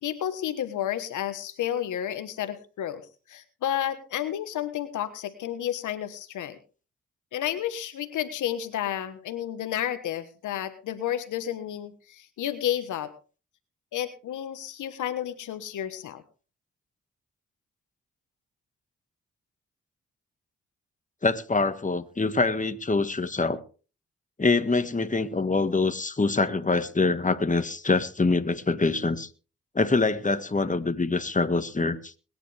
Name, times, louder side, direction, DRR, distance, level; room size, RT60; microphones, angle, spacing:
voice 1, 0.0-3.0 3.3-6.6 7.3-13.1 13.9-16.2, left 11 dB, 85° left, 1.4 m, -31 dB
voice 2, 21.2-23.6 24.4-29.3 29.7-32.1, left 3 dB, 25° left, 1.7 m, -25 dB
21.5 x 10.5 x 3.4 m
supercardioid pair, 45°, 30 cm